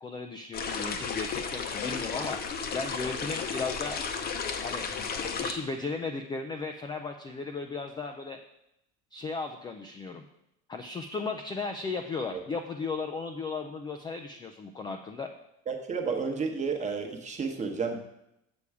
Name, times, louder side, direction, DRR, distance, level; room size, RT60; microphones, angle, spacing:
voice 1, 0.0-2.4 2.7-4.0 4.6-4.9 5.4-8.4 9.1-10.3 10.7-15.3, left 4 dB, 15° left, 5 dB, 0.3 m, -35 dB
sound 1, 0.5-5.5, left 6 dB, 30° left, 0.7 m, -33 dB
voice 2, 15.7-18.0, right 5 dB, 25° right, 4 dB, 1.0 m, -31 dB
6.9 x 6.9 x 4.8 m, 0.82 s
cardioid pair, 155°, 31 cm